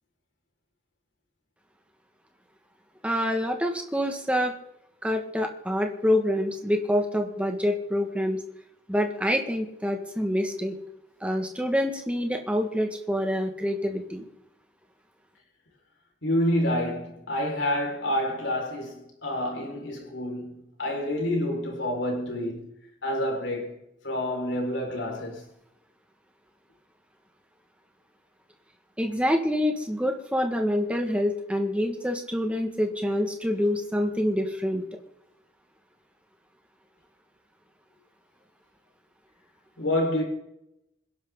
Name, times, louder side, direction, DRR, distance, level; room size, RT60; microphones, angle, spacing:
voice 1, 3.0-4.5 5.0-8.4 8.9-10.8 11.2-14.2 29.0-34.8, equal, 5° right, 1.9 m, -26 dB
voice 2, 16.2-22.7 23.0-23.8 24.0-25.4 39.8-40.2, left 1 dB, 85° left, 5.5 m, -28 dB
27.0 x 11.0 x 4.0 m
head